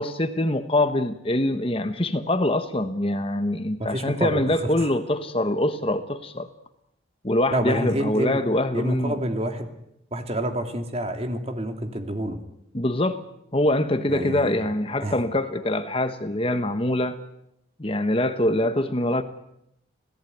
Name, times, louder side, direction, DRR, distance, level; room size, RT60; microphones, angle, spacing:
voice 1, 0.0-6.5 7.2-9.1 12.7-13.2 13.5-17.2 17.8-19.2, left 1 dB, 30° left, 9 dB, 1.2 m, -24 dB
voice 2, 3.8-4.9 7.5-8.4 8.7-9.7 10.1-12.4 14.1-14.5 15.0-15.2, right 1 dB, 30° right, 6 dB, 2.5 m, -28 dB
26.5 x 17.5 x 9.4 m, 0.80 s
head